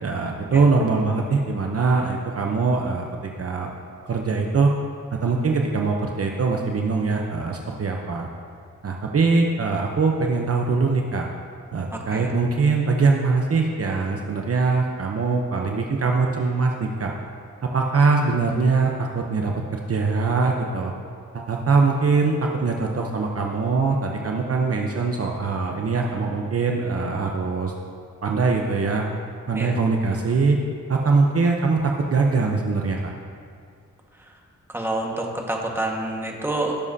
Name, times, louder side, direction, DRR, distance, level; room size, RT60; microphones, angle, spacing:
voice 1, 0.0-3.7 4.1-4.7 5.2-8.3 8.8-11.3 11.7-17.1 17.6-20.9 21.3-27.7 28.2-29.1 29.5-30.6 30.9-33.1, right 4 dB, 45° right, 1 dB, 0.8 m, -22 dB
voice 2, 11.9-12.3 29.5-29.8 34.3-34.4 34.7-36.8, right 1 dB, 5° right, -1 dB, 1.5 m, -28 dB
16.5 x 7.3 x 2.8 m, 2.2 s
cardioid pair, 80°, 32 cm